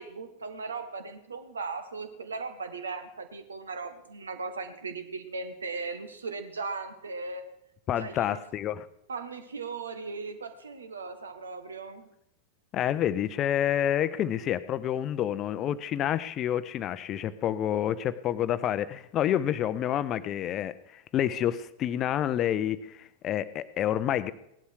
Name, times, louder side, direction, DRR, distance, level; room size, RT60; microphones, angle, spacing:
voice 1, 0.0-7.5 8.0-8.4 9.1-12.1, right 4 dB, 70° right, 10 dB, 1.4 m, -38 dB
voice 2, 7.9-8.9 12.7-24.3, left 11 dB, 30° left, 15 dB, 0.7 m, -28 dB
17.5 x 11.5 x 4.7 m, 0.81 s
figure-of-eight pair, 90°, 0 cm